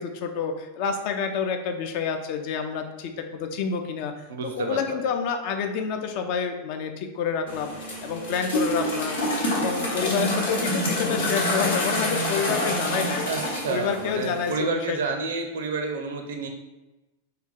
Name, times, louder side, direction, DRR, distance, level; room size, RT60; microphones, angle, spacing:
voice 1, 0.0-4.1 4.4-13.2 13.7-15.2, left 6 dB, 45° left, 6 dB, 0.4 m, -28 dB
voice 2, 4.3-5.0 13.2-16.5, right 4 dB, 60° right, 4 dB, 0.5 m, -29 dB
sound 1, 7.5-14.6, left 1 dB, 60° left, 0.9 m, -27 dB
3.4 x 2.2 x 3.7 m, 1.0 s
figure-of-eight pair, 90°, 0 cm